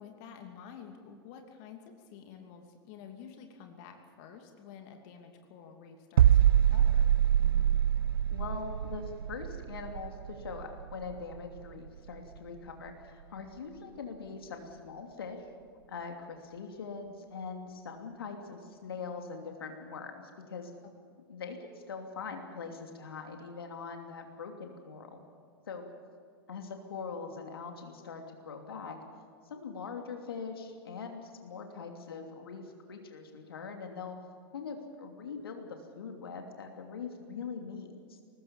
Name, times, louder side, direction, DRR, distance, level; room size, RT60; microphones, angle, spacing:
voice 1, 0.0-7.1 20.8-20.9, left 7 dB, 45° left, 4 dB, 2.8 m, -50 dB
sound 1, 6.2-11.9 12.1-12.4, right 10 dB, 70° right, 0.6 m, -26 dB
voice 2, 7.4-7.7 8.3-15.4 15.9-20.7 21.3-25.2 25.6-25.9 26.5-29.0 29.4-34.2 34.5-38.2, left 5 dB, 70° left, 4 dB, 2.9 m, -42 dB
23.0 x 19.5 x 7.4 m, 2.3 s
figure-of-eight pair, 100°, 13 cm